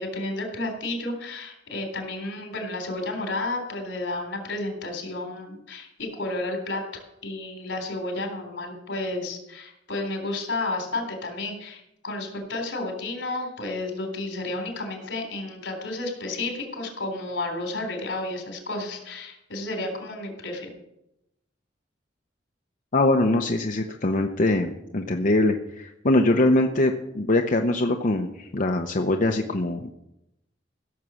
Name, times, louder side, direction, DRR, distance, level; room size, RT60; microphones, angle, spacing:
voice 1, 0.0-20.7, left 2 dB, 75° left, 3 dB, 3.7 m, -32 dB
voice 2, 22.9-29.9, left 2 dB, 45° left, 4 dB, 0.8 m, -23 dB
16.0 x 7.1 x 6.3 m, 0.85 s
head